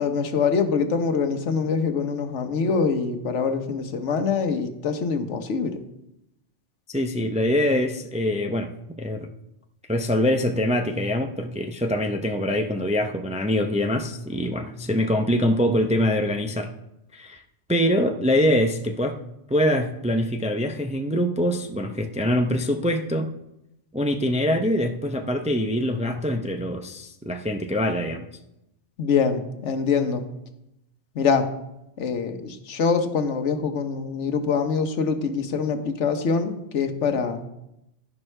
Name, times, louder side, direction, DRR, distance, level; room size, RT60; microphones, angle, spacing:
voice 1, 0.0-5.8 29.0-30.2 31.1-31.5 32.0-37.4, left 5 dB, 85° left, 8 dB, 1.2 m, -24 dB
voice 2, 6.9-8.7 9.0-9.3 9.9-16.7 17.1-17.4 17.7-19.2 19.5-23.3 23.9-28.3, equal, 10° right, 5 dB, 0.4 m, -24 dB
11.0 x 11.0 x 3.3 m, 0.87 s
omnidirectional pair, 1.2 m